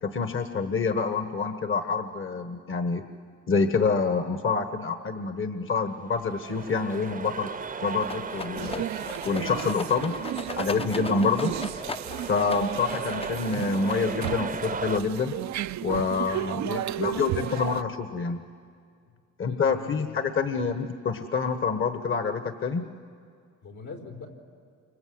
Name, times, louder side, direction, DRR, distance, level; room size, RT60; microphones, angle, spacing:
voice 1, 0.0-3.0 3.5-7.5 7.8-8.8 9.2-10.1 10.6-11.5 12.3-15.3 15.8-18.4 19.4-22.9, left 4 dB, 40° left, 8 dB, 1.3 m, -27 dB
sound 1, 6.0-15.0, right 5 dB, 30° right, 0.8 m, -37 dB
Rattle, 8.0-14.7, left 3 dB, 20° left, 0.6 m, -39 dB
sound 2, 8.6-17.8, right 13 dB, 65° right, 0.6 m, -34 dB
voice 2, 16.2-17.2 19.1-19.2 19.5-20.2 20.5-20.7 23.6-24.3, left 4 dB, 80° left, 1 dB, 4.2 m, -43 dB
29.5 x 26.0 x 7.9 m, 2.2 s
cardioid pair, 90°, 30 cm